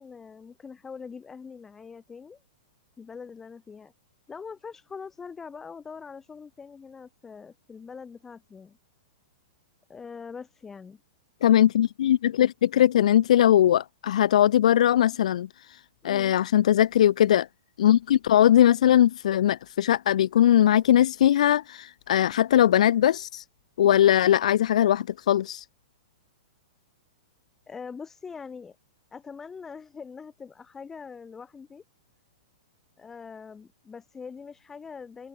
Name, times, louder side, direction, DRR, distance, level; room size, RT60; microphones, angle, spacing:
voice 1, 0.0-2.4 3.0-3.9 4.3-8.8 9.9-11.0 16.0-16.3 27.7-28.8 29.1-31.8 33.0-35.3, left 5 dB, 10° left, 0.8 m, -43 dB
voice 2, 11.4-15.5 16.0-17.5 17.8-23.4 23.8-25.6, left 11 dB, 65° left, 0.4 m, -20 dB
hypercardioid pair, 165°, 4 cm